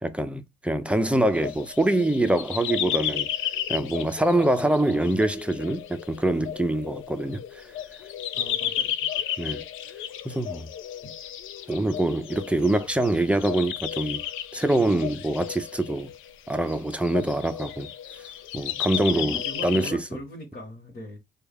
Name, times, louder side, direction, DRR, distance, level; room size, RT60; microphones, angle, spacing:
voice 1, 0.0-3.3 3.7-7.4 9.4-9.6 10.2-10.7 11.7-14.2 14.5-16.1 16.5-17.9 18.5-20.0, right 1 dB, 5° right, 0.5 m, -24 dB
sound 1, 1.3-19.9, left 10 dB, 85° left, 0.5 m, -33 dB
voice 2, 8.3-9.1 19.1-21.2, left 1 dB, 50° left, 1.3 m, -40 dB
3.3 x 2.3 x 3.4 m
cardioid pair, 90°, 20 cm